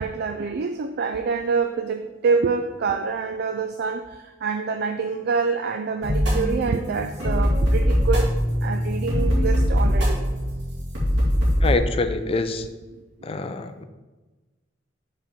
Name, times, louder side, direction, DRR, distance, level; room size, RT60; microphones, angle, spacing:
voice 1, 0.0-10.2, right 5 dB, 60° right, 7 dB, 0.3 m, -26 dB
sound 1, 6.0-11.7, equal, 75° right, 2.1 m, -22 dB
voice 2, 11.6-12.7 13.2-13.8, left 3 dB, 30° left, 9 dB, 0.4 m, -25 dB
5.1 x 4.2 x 5.1 m, 1.2 s
head